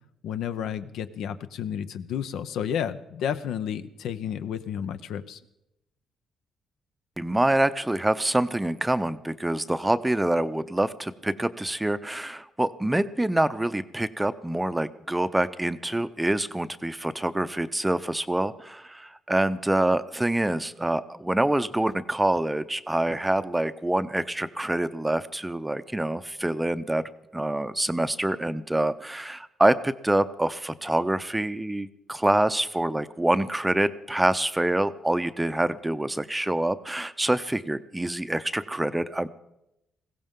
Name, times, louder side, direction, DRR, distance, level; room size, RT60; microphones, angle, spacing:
voice 1, 0.2-5.4, left 9 dB, 80° left, 11 dB, 0.6 m, -31 dB
voice 2, 7.2-27.0 27.3-39.3, right 1 dB, 10° right, 12 dB, 0.6 m, -26 dB
21.0 x 16.0 x 3.7 m, 0.87 s
cardioid pair, 90°, 0 cm